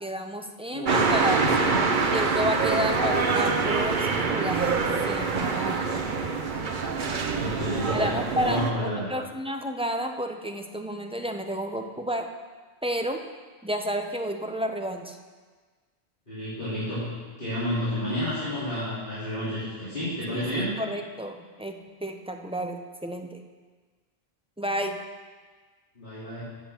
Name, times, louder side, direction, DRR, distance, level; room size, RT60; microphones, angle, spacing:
voice 1, 0.0-1.4 2.0-4.8 5.1-6.0 7.9-12.3 12.8-13.2 13.6-15.2 20.3-23.4 24.6-25.0, equal, 5° right, 4 dB, 0.5 m, -31 dB
voice 2, 0.7-1.9 2.6-2.8 7.1-9.1 16.3-17.1 17.4-20.7 26.0-26.4, equal, 55° left, -14 dB, 3.8 m, -31 dB
sound 1, 0.9-8.7, right 4 dB, 55° right, 0.9 m, -25 dB
8.3 x 7.8 x 7.0 m, 1.4 s
omnidirectional pair, 1.1 m